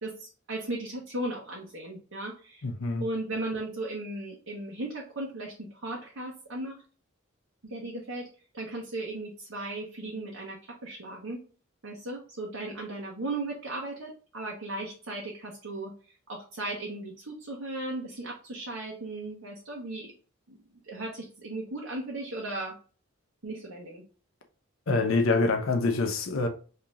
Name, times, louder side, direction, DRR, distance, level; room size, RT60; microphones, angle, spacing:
voice 1, 0.0-2.6 3.0-6.8 7.6-8.3 8.5-11.4 11.8-15.9 16.3-20.1 20.5-20.6 20.8-22.7 23.4-24.0, right 2 dB, 70° right, 1.0 m, -36 dB
voice 2, 2.6-3.0 24.9-26.5, left 3 dB, 65° left, 0.7 m, -25 dB
5.4 x 2.8 x 2.4 m
head